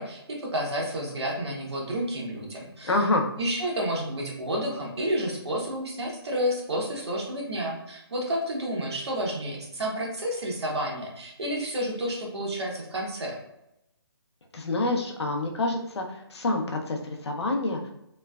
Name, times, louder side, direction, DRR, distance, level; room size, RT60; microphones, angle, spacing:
voice 1, 0.0-2.9 3.4-13.4, equal, 85° right, -2 dB, 1.0 m, -30 dB
voice 2, 2.8-3.3 14.5-17.9, left 2 dB, 90° left, 2 dB, 0.6 m, -27 dB
3.1 x 2.1 x 2.3 m, 0.85 s
hypercardioid pair, 180°, 14 cm